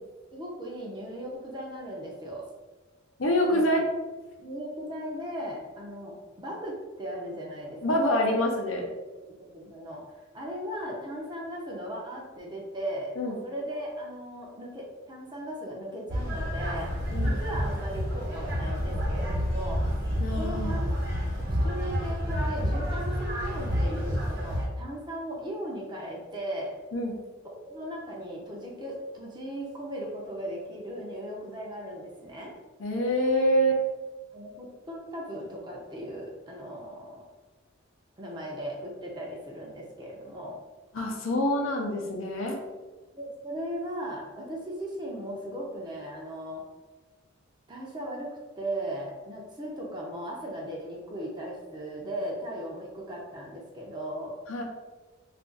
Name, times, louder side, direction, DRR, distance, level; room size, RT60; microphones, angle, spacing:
voice 1, 0.3-2.4 3.5-3.7 4.4-8.2 9.5-16.9 17.2-19.8 20.4-21.1 21.6-26.7 27.4-32.5 34.3-37.2 38.2-40.6 43.1-46.6 47.7-54.3, right 1 dB, 20° right, -2 dB, 0.6 m, -37 dB
voice 2, 3.2-3.9 7.8-8.9 13.2-13.4 17.1-17.4 20.2-20.8 26.9-27.2 32.8-33.8 40.9-42.6 54.5-54.6, equal, 75° left, 1 dB, 0.6 m, -26 dB
sound 1, 16.1-24.7, equal, 55° right, 1.1 m, -29 dB
2.5 x 2.4 x 3.7 m, 1.2 s
head